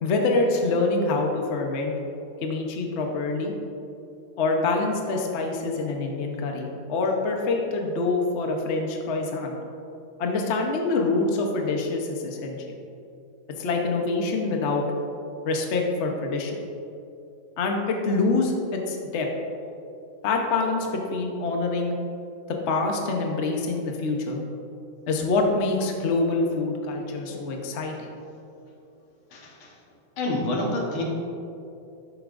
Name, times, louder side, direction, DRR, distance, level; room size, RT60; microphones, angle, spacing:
voice 1, 0.0-1.9 2.4-3.5 4.4-9.6 10.2-12.7 13.6-14.8 15.4-16.6 17.6-19.3 20.2-21.9 22.5-24.4 25.1-28.1, left 3 dB, 45° left, 1 dB, 1.0 m, -25 dB
voice 2, 29.3-29.7 30.2-31.0, left 1 dB, 85° left, -1 dB, 2.1 m, -28 dB
12.5 x 8.4 x 2.6 m, 2.7 s
omnidirectional pair, 2.2 m